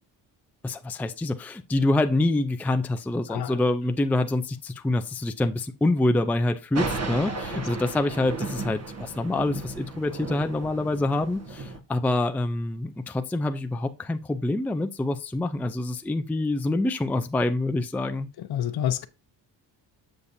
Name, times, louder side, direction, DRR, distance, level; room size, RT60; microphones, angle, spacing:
voice 1, 0.6-18.3, left 2 dB, 5° left, 0.4 m, -26 dB
voice 2, 3.3-3.6 7.3-7.7 18.4-19.1, left 10 dB, 60° left, 0.7 m, -29 dB
Thunder, 6.7-11.8, right 3 dB, 35° right, 1.4 m, -34 dB
7.1 x 6.6 x 2.7 m
cardioid pair, 110°, 44 cm